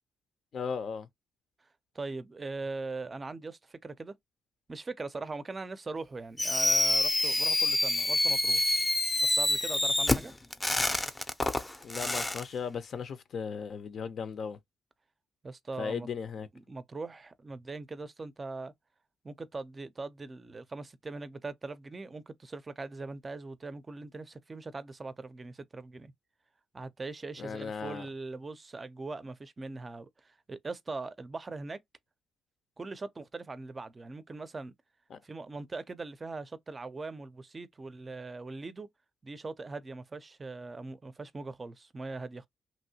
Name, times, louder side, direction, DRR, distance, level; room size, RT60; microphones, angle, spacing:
voice 1, 0.5-1.1 11.8-14.6 15.8-16.5 27.4-28.1 35.1-35.2, left 6 dB, 55° left, 0.6 m, -36 dB
voice 2, 1.9-4.1 4.7-8.6 9.2-10.3 15.4-16.1 16.5-18.7 19.2-26.1 26.7-31.8 32.8-34.7 35.2-38.9 39.2-42.5, right 3 dB, 30° right, 0.5 m, -41 dB
Fireworks, 6.4-12.4, left 1 dB, 15° left, 0.6 m, -27 dB
3.0 x 2.7 x 2.7 m
cardioid pair, 90°, 0 cm